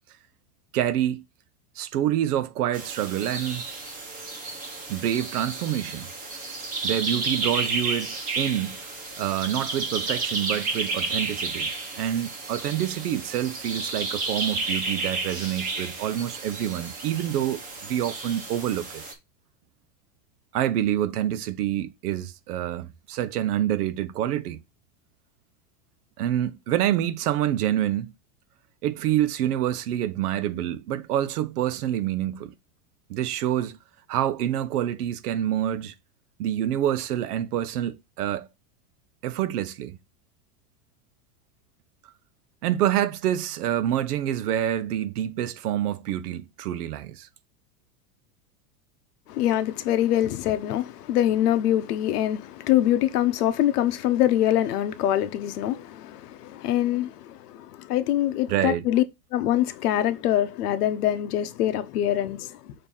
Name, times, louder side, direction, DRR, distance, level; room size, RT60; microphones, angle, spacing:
voice 1, 0.7-1.2 1.8-3.6 4.9-6.1 6.8-8.8 9.2-19.0 20.5-24.6 26.2-28.1 28.8-32.5 33.1-33.8 34.1-35.9 36.4-38.5 39.2-40.0 42.6-47.3 58.5-58.8, right 11 dB, 75° right, 1.0 m, -27 dB
sound 1, 2.7-19.1, right 3 dB, 15° right, 1.1 m, -32 dB
voice 2, 49.3-59.0 59.3-62.7, left 12 dB, 75° left, 1.0 m, -24 dB
6.8 x 2.9 x 5.4 m
supercardioid pair, 180°, 46 cm